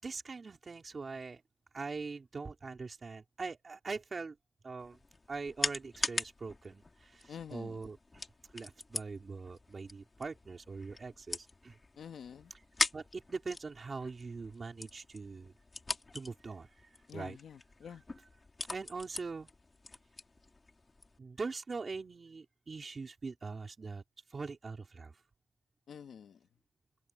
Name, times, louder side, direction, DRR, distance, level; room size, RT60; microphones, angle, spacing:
voice 1, 0.0-1.4 1.7-4.4 4.6-5.0 5.3-8.0 8.5-11.8 12.9-15.5 16.1-16.7 17.1-17.4 18.7-19.5 21.2-24.0 24.3-25.1, right 4 dB, 35° right, 4.2 m, -42 dB
sound 1, 4.8-21.2, left 3 dB, 25° left, 4.6 m, -42 dB
voice 2, 7.3-7.8 12.0-12.5 17.1-18.0 25.9-26.4, left 7 dB, 80° left, 1.7 m, -47 dB
wide cardioid pair, 155°, 0 cm